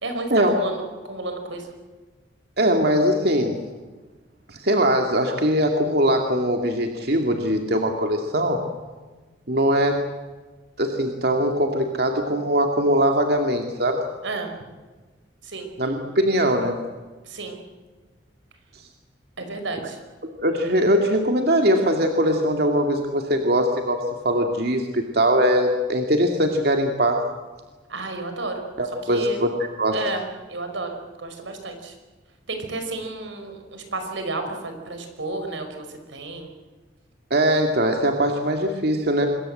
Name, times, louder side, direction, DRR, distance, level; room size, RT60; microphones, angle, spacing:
voice 1, 0.0-1.7 14.2-14.5 15.4-15.7 17.3-17.6 19.4-20.0 27.9-28.6 29.0-29.4 29.9-30.2 30.5-31.9 32.5-36.5, right 3 dB, 90° right, 5 dB, 5.2 m, -32 dB
voice 2, 2.6-3.6 4.5-8.6 9.5-10.0 10.8-14.0 15.8-16.8 20.2-27.2 28.8-29.5 29.8-30.0 37.3-39.3, equal, 55° right, 3 dB, 2.3 m, -21 dB
26.0 x 22.5 x 7.8 m, 1.3 s
head